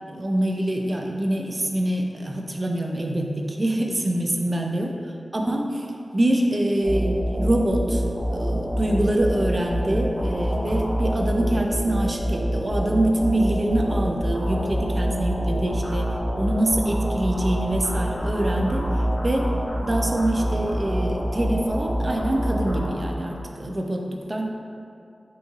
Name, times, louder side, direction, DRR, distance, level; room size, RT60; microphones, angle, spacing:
voice 1, 0.1-4.9 5.3-5.9 6.1-8.0 8.3-18.9 19.2-19.5 19.8-24.5, right 1 dB, 30° right, 1 dB, 0.4 m, -25 dB
sound 1, 6.8-23.4, equal, 20° left, 1.1 m, -26 dB
5.2 x 3.1 x 2.4 m, 2.5 s
wide cardioid pair, 100°, 0 cm